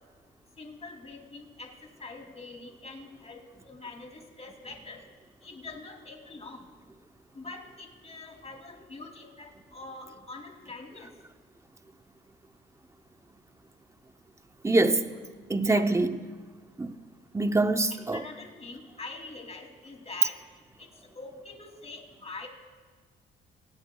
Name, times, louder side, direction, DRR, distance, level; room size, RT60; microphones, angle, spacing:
voice 1, 0.6-1.7 2.0-5.0 5.4-6.6 7.3-11.1 15.7-15.9 17.9-20.4 20.8-20.9 21.1-22.5, left 3 dB, 30° left, 2.8 m, -44 dB
voice 2, 14.6-15.0 15.5-16.2 16.8-16.9 17.3-18.2, right 2 dB, 15° right, 0.7 m, -24 dB
23.5 x 17.0 x 2.3 m
cardioid pair, 90°, 20 cm